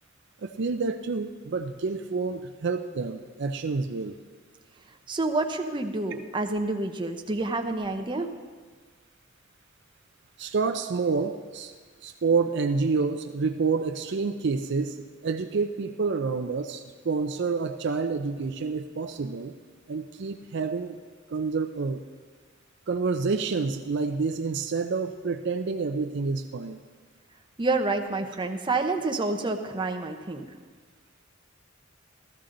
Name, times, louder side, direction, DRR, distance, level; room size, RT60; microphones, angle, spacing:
voice 1, 0.4-4.2 10.4-11.7 12.0-15.0 15.2-19.5 19.9-21.0 21.3-22.0 22.9-26.8, right 4 dB, 60° right, 7 dB, 0.5 m, -28 dB
voice 2, 5.1-8.3 27.6-30.4, right 2 dB, 25° right, 4 dB, 0.8 m, -28 dB
14.0 x 13.5 x 3.9 m, 1.5 s
head